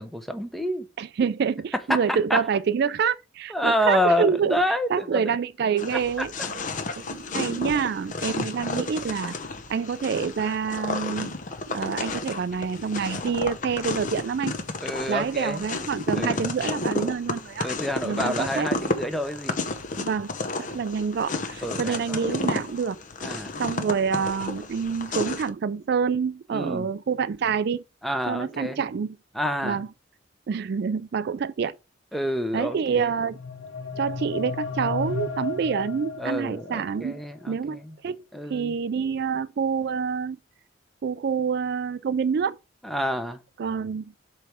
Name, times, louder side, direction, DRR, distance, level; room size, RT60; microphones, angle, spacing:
voice 1, 0.0-0.9 1.9-2.0 2.3-2.4 3.5-5.2 14.8-15.6 16.1-16.5 17.6-19.6 21.6-22.2 23.2-23.6 26.5-26.9 28.0-28.8 29.3-29.8 32.1-33.1 36.2-37.9 38.3-38.7 42.8-43.4, equal, ahead, 0.7 m, -28 dB
voice 2, 1.0-4.6 4.9-6.3 7.1-9.4 9.7-11.3 11.7-14.5 15.1-17.7 18.0-18.7 20.0-20.3 20.6-23.0 23.6-27.8 28.3-29.2 29.6-29.9 30.5-31.8 32.5-33.4 34.0-37.2 37.5-37.8 38.0-40.4 41.0-42.6 43.6-44.0, right 6 dB, 55° right, 0.3 m, -27 dB
sound 1, 5.8-25.5, left 2 dB, 40° left, 0.8 m, -32 dB
sound 2, 33.0-37.0, left 5 dB, 90° left, 0.8 m, -34 dB
7.5 x 3.2 x 5.0 m
head